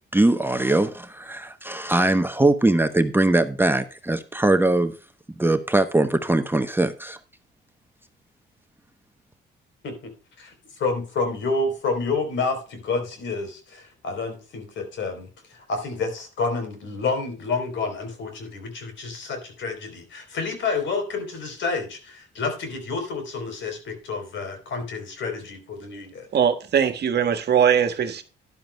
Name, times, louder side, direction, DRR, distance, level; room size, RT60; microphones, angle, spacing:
voice 1, 0.1-4.9 5.4-7.2, right 2 dB, 10° right, 0.8 m, -21 dB
voice 2, 10.8-26.3, left 4 dB, 70° left, 3.7 m, -29 dB
voice 3, 26.3-28.2, right 8 dB, 55° right, 1.5 m, -21 dB
12.5 x 11.0 x 2.2 m
cardioid pair, 90°, 20 cm